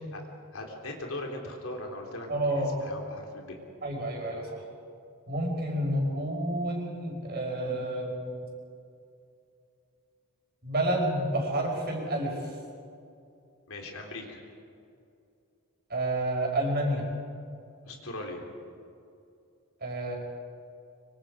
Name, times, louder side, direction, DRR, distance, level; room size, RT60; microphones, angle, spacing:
voice 1, 0.5-3.6 13.7-14.4 17.8-18.5, left 1 dB, 70° left, 1 dB, 3.7 m, -39 dB
voice 2, 2.3-2.7 3.8-4.6 5.3-8.5 10.6-12.5 15.9-17.1 19.8-20.2, right 1 dB, 45° right, 0 dB, 5.4 m, -29 dB
25.0 x 25.0 x 5.1 m, 2.5 s
head